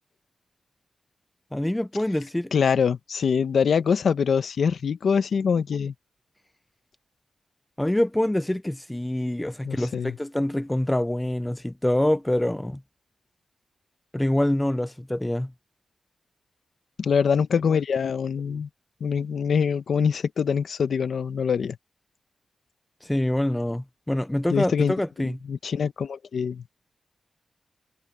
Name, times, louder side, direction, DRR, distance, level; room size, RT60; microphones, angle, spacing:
voice 1, 1.5-2.5 7.8-12.8 14.1-15.5 23.0-25.4, left 1 dB, 10° left, 0.4 m, -25 dB
voice 2, 2.5-5.9 9.6-10.1 17.0-18.7 19.0-21.8 24.5-24.9 25.2-26.6, left 6 dB, 80° left, 1.1 m, -24 dB
wide cardioid pair, 125°, 0 cm